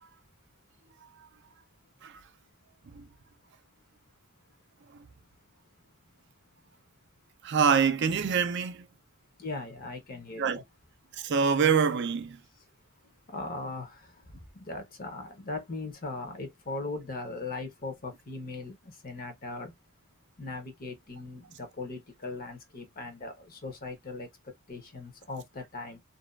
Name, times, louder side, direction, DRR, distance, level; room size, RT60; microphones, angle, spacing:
voice 1, 7.4-8.9 10.4-10.6 11.1-12.4, right 6 dB, 55° right, 0.4 m, -25 dB
voice 2, 9.4-10.6 13.3-14.1 14.6-19.7 20.4-24.3 24.7-26.0, left 3 dB, 45° left, 0.8 m, -39 dB
2.6 x 2.3 x 2.2 m
head